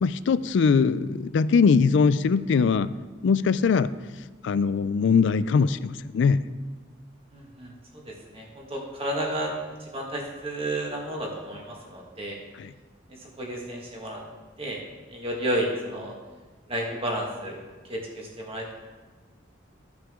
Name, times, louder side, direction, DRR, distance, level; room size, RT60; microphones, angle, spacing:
voice 1, 0.0-2.9 3.2-3.9 4.4-6.4 12.6-12.7, left 5 dB, 60° left, 15 dB, 0.3 m, -21 dB
voice 2, 7.3-7.7 8.1-9.5 9.9-12.4 13.4-14.2 14.6-14.8 15.1-16.1 16.7-17.6 17.9-18.7, right 1 dB, 30° right, -2 dB, 1.8 m, -31 dB
14.0 x 5.8 x 3.7 m, 1.3 s
head